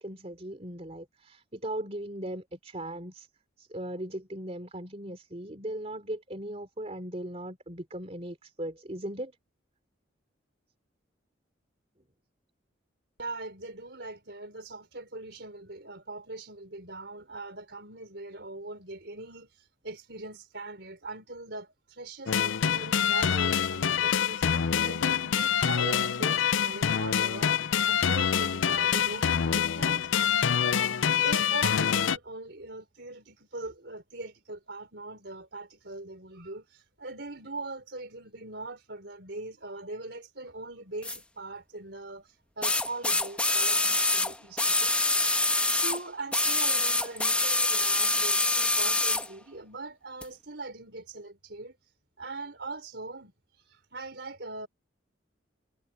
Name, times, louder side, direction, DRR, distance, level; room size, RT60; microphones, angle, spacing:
voice 1, 0.0-3.3 3.6-9.3, right 1 dB, 35° right, 3.4 m, -38 dB
voice 2, 13.2-30.4 31.1-51.9 52.2-54.7, right 2 dB, 60° right, 4.4 m, -41 dB
sound 1, 22.3-32.2, left 8 dB, 85° left, 0.5 m, -26 dB
sound 2, 41.0-41.2 42.6-46.0 46.3-49.3 50.2-50.3, left 2 dB, 5° left, 1.3 m, -25 dB
head